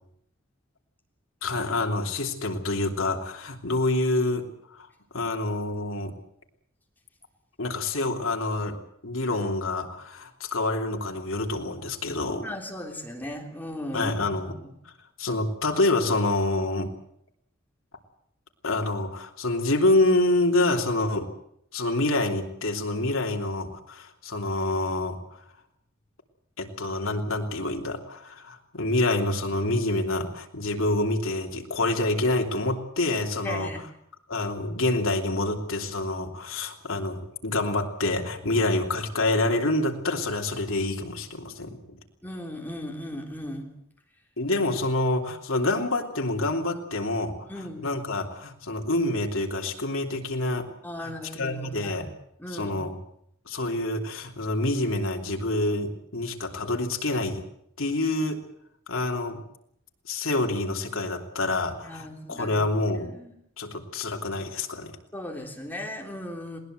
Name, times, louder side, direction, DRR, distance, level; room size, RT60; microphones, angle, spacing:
voice 1, 1.4-4.5 4.7-4.9 5.1-6.2 7.6-8.8 9.0-12.5 13.9-14.5 15.2-16.9 18.6-21.3 21.7-25.2 26.6-33.7 34.3-42.0 44.4-50.7 51.0-52.1 52.5-53.0 53.5-57.4 57.8-58.4 58.9-59.4 60.1-63.1 63.6-65.0, left 2 dB, 70° left, 2 dB, 3.1 m, -27 dB
voice 2, 12.4-14.2 14.5-14.6 33.4-33.8 42.2-43.7 47.5-47.9 50.8-52.1 52.4-52.8 61.8-62.6 63.0-63.3 65.1-66.6, left 1 dB, 10° left, 1 dB, 3.6 m, -37 dB
20.5 x 19.0 x 7.9 m, 0.71 s
head